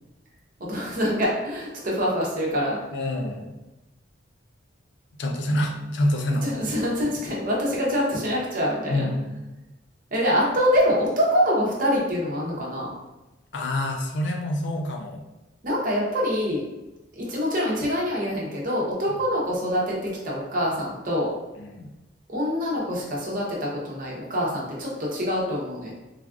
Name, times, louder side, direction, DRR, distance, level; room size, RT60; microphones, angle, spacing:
voice 1, 0.6-2.8 6.3-9.1 10.1-12.9 15.6-16.6 17.1-21.3 22.3-25.9, equal, 45° right, -4 dB, 0.7 m, -25 dB
voice 2, 2.9-3.5 5.2-6.5 8.9-9.4 13.5-15.2 21.6-21.9, left 1 dB, 65° left, 3 dB, 0.4 m, -27 dB
3.2 x 2.3 x 2.4 m, 1.0 s
head